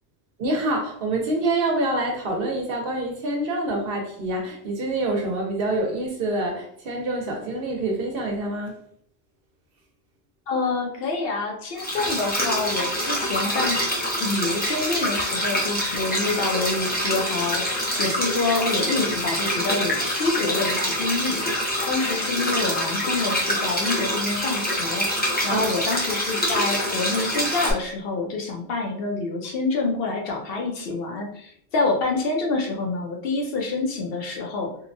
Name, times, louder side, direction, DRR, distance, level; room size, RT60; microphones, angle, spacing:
voice 1, 0.4-8.7 25.5-25.7, right 2 dB, 65° right, 1 dB, 0.8 m, -26 dB
voice 2, 10.5-13.9 14.2-17.7 18.0-25.1 25.4-34.8, left 3 dB, 65° left, 1 dB, 0.7 m, -27 dB
sound 1, 11.8-27.7, equal, 15° left, 0.4 m, -25 dB
2.8 x 2.1 x 2.5 m, 0.65 s
omnidirectional pair, 1.1 m